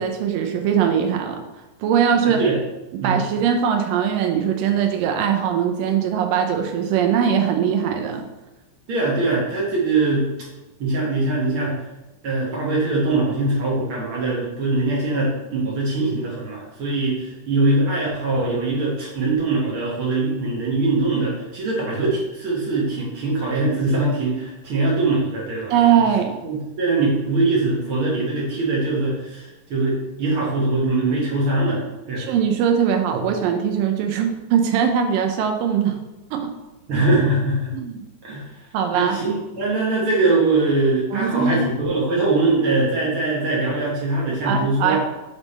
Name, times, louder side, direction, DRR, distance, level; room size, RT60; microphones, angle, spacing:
voice 1, 0.0-1.4 1.8-2.4 3.0-8.2 25.7-26.4 32.2-36.0 36.3-36.5 37.7-38.0 38.7-39.2 41.1-41.6 44.4-45.0, right 8 dB, 85° right, 4 dB, 2.4 m, -21 dB
voice 2, 2.2-2.6 3.0-3.2 8.9-10.3 10.8-11.8 12.2-25.8 26.4-32.3 33.1-33.2 36.9-37.7 38.2-38.5 38.9-45.0, right 2 dB, 60° right, -4 dB, 1.5 m, -22 dB
7.0 x 3.6 x 4.1 m, 1.0 s
omnidirectional pair, 3.9 m